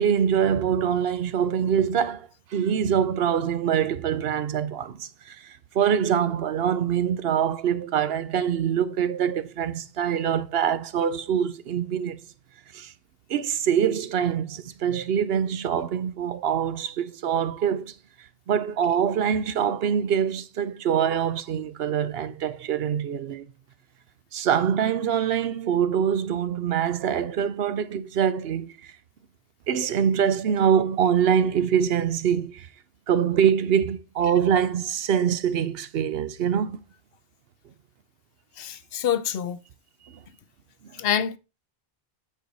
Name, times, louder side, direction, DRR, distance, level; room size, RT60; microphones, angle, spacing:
voice 1, 0.0-12.2 12.7-12.9 13.3-17.9 18.5-23.5 24.3-28.7 29.7-32.7 33.1-36.8, right 8 dB, 75° right, 0.9 m, -24 dB
voice 2, 38.6-39.6 41.0-41.4, left 9 dB, 70° left, 0.8 m, -26 dB
9.1 x 4.7 x 3.9 m
omnidirectional pair, 1.0 m